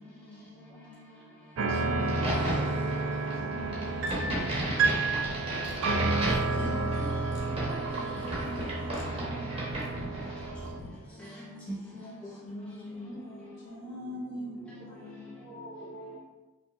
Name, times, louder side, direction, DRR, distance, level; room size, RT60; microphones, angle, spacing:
voice 1, 0.0-1.6 2.7-5.8 7.4-8.0 8.3-10.4 11.4-15.4, equal, 70° left, -6 dB, 1.4 m, -46 dB
Upright Piano Dark Random, 1.6-10.8, right 3 dB, 80° right, 0.4 m, -31 dB
voice 2, 1.9-2.8 4.0-4.3 5.1-5.2 6.3-7.7 11.2-11.4 11.7-11.8 13.1-13.2 13.9-14.0 15.4-15.5, equal, 5° left, -6 dB, 0.4 m, -42 dB
Crack, 2.0-10.5, right 1 dB, 30° right, 0.9 m, -36 dB
sound 1, 3.6-11.0, left 1 dB, 90° left, 0.7 m, -46 dB
voice 3, 10.6-11.2 14.6-14.9 15.3-16.2, right 1 dB, 25° left, -7 dB, 0.9 m, -48 dB
5.1 x 2.7 x 2.3 m, 1.1 s
head